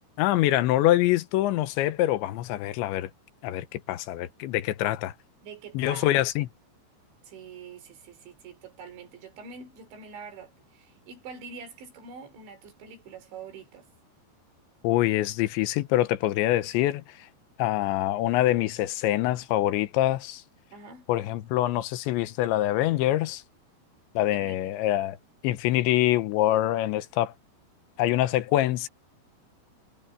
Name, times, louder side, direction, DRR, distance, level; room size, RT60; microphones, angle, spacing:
voice 1, 0.2-3.1 3.4-5.1 5.7-6.5 14.8-17.3 17.6-20.4 21.1-23.4 24.2-25.2 25.4-27.3 28.0-28.9, left 14 dB, 85° left, 3.3 m, -25 dB
voice 2, 5.4-6.1 7.3-13.9 20.7-21.1 24.3-24.7, right 5 dB, 80° right, 6.2 m, -45 dB
omnidirectional pair, 5.1 m